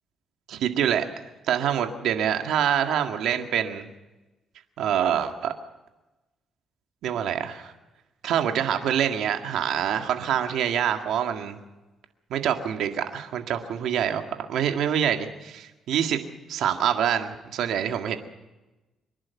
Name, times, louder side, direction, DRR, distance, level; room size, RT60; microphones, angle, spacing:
voice 1, 0.5-1.1 1.5-3.9 4.8-5.5 7.0-7.7 8.2-11.6 12.3-14.2 14.5-16.2 16.5-18.2, right 9 dB, 80° right, 6 dB, 1.9 m, -25 dB
25.0 x 11.0 x 9.6 m, 1.1 s
cardioid pair, 90°, 0 cm